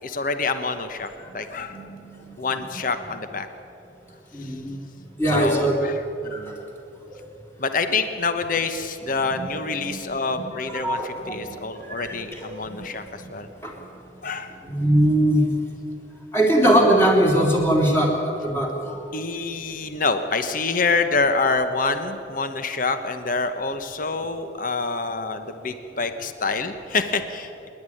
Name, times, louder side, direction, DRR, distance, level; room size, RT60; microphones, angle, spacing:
voice 1, 0.0-1.8 2.4-3.5 4.4-4.5 5.3-5.9 6.2-6.5 7.6-13.5 14.2-14.5 19.1-27.7, left 4 dB, 45° left, 9 dB, 1.1 m, -26 dB
voice 2, 4.3-4.7 5.2-5.7 6.3-6.5 9.7-9.9 10.3-10.4 10.7-11.5 11.8-12.6 13.6-13.8 14.6-15.4 16.3-19.0, right 1 dB, 15° left, -1 dB, 3.3 m, -21 dB
25.5 x 11.0 x 10.0 m, 2.9 s
head